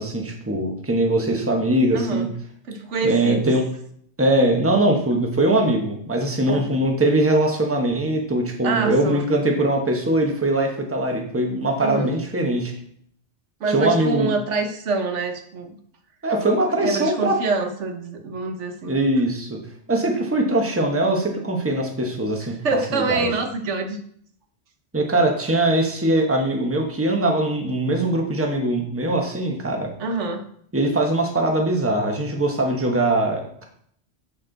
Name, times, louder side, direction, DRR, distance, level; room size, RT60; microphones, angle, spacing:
voice 1, 0.0-2.3 3.0-3.6 4.2-12.7 13.7-14.3 16.2-17.4 18.8-19.6 19.9-22.6 22.9-23.3 24.9-29.9 30.7-33.6, right 1 dB, 10° right, 1 dB, 1.1 m, -21 dB
voice 2, 1.9-2.3 2.7-3.5 6.5-6.7 8.6-9.2 11.8-12.1 13.6-15.8 16.8-19.0 22.6-24.0 30.0-30.4, right 3 dB, 80° right, 5 dB, 1.3 m, -26 dB
9.9 x 4.3 x 4.0 m, 0.63 s
omnidirectional pair, 1.2 m